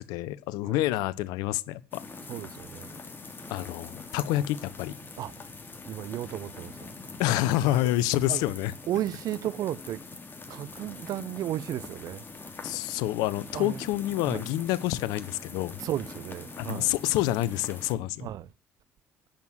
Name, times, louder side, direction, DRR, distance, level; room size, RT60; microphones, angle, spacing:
voice 1, 0.0-2.0 3.5-5.0 7.2-8.7 12.6-15.8 16.6-18.3, left 15 dB, 75° left, 0.8 m, -28 dB
sound 1, 1.9-17.9, left 3 dB, 30° left, 3.6 m, -44 dB
voice 2, 2.3-2.9 3.4-3.5 5.2-5.3 5.9-6.9 8.3-8.4 8.9-10.0 10.5-12.3 13.5-13.9 14.3-14.4 15.8-16.9 18.2-18.5, right 12 dB, 60° right, 0.8 m, -34 dB
10.5 x 7.5 x 8.0 m
hypercardioid pair, 60°, 7 cm